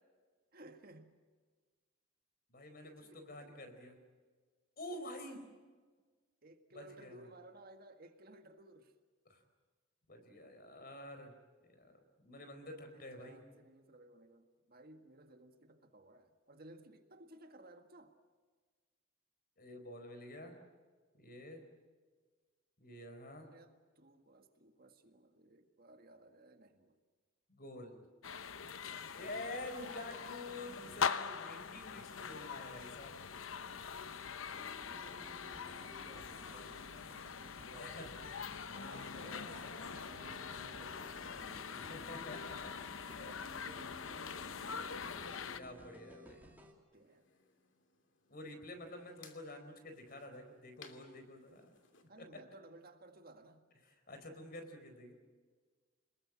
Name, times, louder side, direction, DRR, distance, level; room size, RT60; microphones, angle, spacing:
voice 1, 0.5-1.2 2.8-3.7 6.4-8.9 12.8-18.1 23.4-27.0 32.3-32.6 33.6-37.3 37.6-41.3 43.0-44.5 46.9-47.3 52.1-53.6, right 2 dB, 50° right, 6 dB, 1.8 m, -59 dB
voice 2, 2.5-4.0 4.8-5.5 6.7-7.2 9.3-9.4 10.1-11.3 11.7-13.4 19.6-20.6 21.2-21.6 22.8-23.5 27.5-28.0 28.9-33.1 37.7-38.1 40.3-40.4 41.8-42.8 45.6-46.4 48.3-51.7 52.2-52.3 54.1-55.1, left 1 dB, 45° left, 6 dB, 4.6 m, -48 dB
sound 1, 28.2-45.6, left 6 dB, 85° left, 0.9 m, -43 dB
sound 2, 34.5-46.7, equal, 10° right, 3.0 m, -57 dB
sound 3, 46.9-52.1, left 6 dB, 65° left, 2.7 m, -63 dB
27.0 x 21.0 x 7.5 m, 1.4 s
head